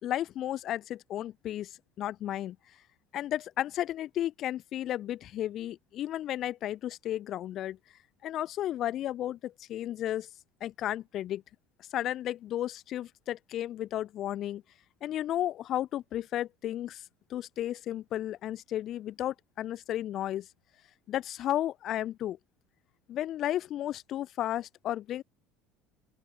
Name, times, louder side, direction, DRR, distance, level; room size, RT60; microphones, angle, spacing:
voice 1, 0.0-2.6 3.1-7.8 8.2-10.3 10.6-11.4 11.9-14.6 15.0-17.0 17.3-20.5 21.1-22.4 23.1-25.2, left 12 dB, 50° left, 5.4 m, -33 dB
open air
supercardioid pair, 120°, 0 cm